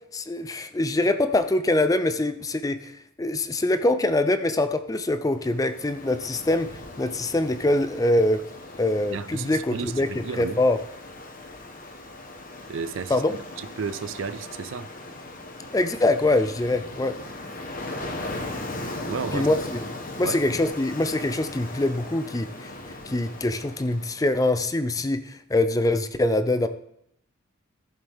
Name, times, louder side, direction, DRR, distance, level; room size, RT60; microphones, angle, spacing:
voice 1, 0.1-2.9 3.2-6.7 7.0-8.4 8.8-10.1 10.4-10.8 13.1-13.3 15.7-17.1 19.3-19.6 20.2-22.7 23.1-26.7, left 2 dB, 15° left, 0.4 m, -23 dB
Ocean, 5.3-24.5, left 2 dB, 40° left, 1.2 m, -38 dB
voice 2, 9.1-10.6 12.7-13.2 13.6-14.9 19.1-19.5 20.2-20.6, right 5 dB, 65° right, 0.4 m, -33 dB
14.5 x 7.2 x 3.5 m
head